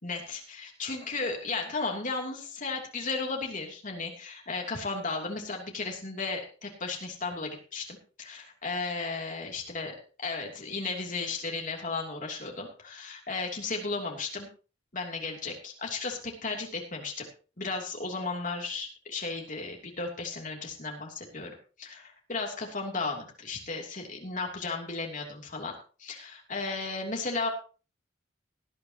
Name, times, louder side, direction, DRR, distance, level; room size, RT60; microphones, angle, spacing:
voice 1, 0.0-9.9 10.2-14.5 14.9-17.3 17.6-25.7 26.0-27.5, left 3 dB, 45° left, 1 dB, 3.0 m, -35 dB
18.5 x 11.0 x 2.9 m, 0.36 s
head